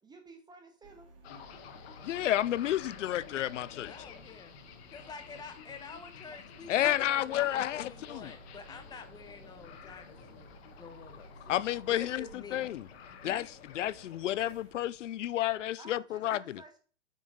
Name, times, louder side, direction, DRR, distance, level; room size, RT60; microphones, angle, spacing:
voice 1, 0.0-1.1 5.0-5.2 6.3-6.4 9.4-9.6 15.8-16.8, right 3 dB, 10° right, 1.2 m, -54 dB
sound 1, 0.8-14.7, right 3 dB, 80° right, 3.0 m, -57 dB
sound 2, 1.2-15.6, left 7 dB, 55° left, 1.3 m, -51 dB
voice 2, 2.0-3.9 6.7-8.3 11.5-12.9 13.2-16.6, left 13 dB, 75° left, 0.5 m, -31 dB
voice 3, 3.8-4.6 4.9-10.5 10.8-11.6 11.9-12.7 13.2-13.5, left 5 dB, 10° left, 0.9 m, -48 dB
6.9 x 5.6 x 3.6 m
hypercardioid pair, 115°, 38 cm